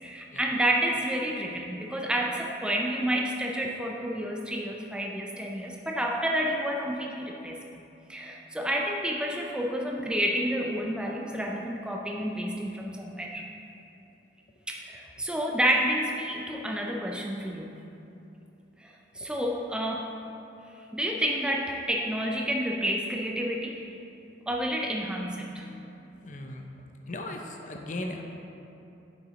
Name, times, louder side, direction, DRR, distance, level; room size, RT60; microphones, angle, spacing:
voice 1, 0.0-13.5 14.7-17.8 18.8-20.2 20.9-23.8 24.5-25.6, equal, 5° right, -1 dB, 0.4 m, -30 dB
voice 2, 26.2-26.7 27.1-28.2, left 2 dB, 40° left, 3 dB, 0.6 m, -37 dB
8.5 x 6.8 x 3.1 m, 2.8 s
head